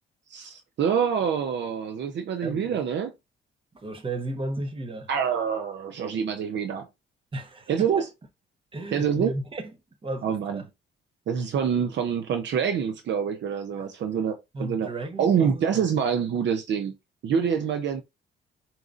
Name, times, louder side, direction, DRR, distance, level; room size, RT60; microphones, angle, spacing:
voice 1, 0.3-3.1 5.1-6.9 7.7-8.0 8.9-9.3 10.2-10.6 11.3-14.9 15.2-16.9 17.2-18.0, right 7 dB, 65° right, 0.7 m, -26 dB
voice 2, 2.4-2.8 3.8-5.1 7.3-8.1 8.7-9.6 10.0-10.7 14.5-15.9, right 2 dB, 25° right, 1.1 m, -34 dB
4.8 x 2.9 x 2.5 m
cardioid pair, 90°, 20 cm